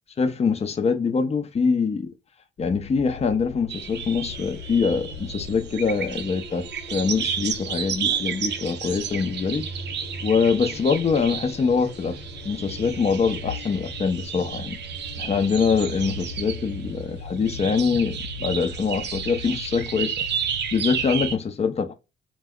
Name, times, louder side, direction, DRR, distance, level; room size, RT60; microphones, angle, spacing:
voice 1, 0.2-2.1 2.6-9.6 10.2-12.2 12.4-14.8 15.2-20.1 20.7-21.9, left 5 dB, 30° left, 0.6 m, -24 dB
sound 1, 2.6-21.3, left 1 dB, 75° left, 1.1 m, -39 dB
sound 2, 3.7-16.9 17.4-21.4, right 8 dB, 60° right, 0.5 m, -32 dB
2.3 x 2.1 x 3.6 m
cardioid pair, 90°, 20 cm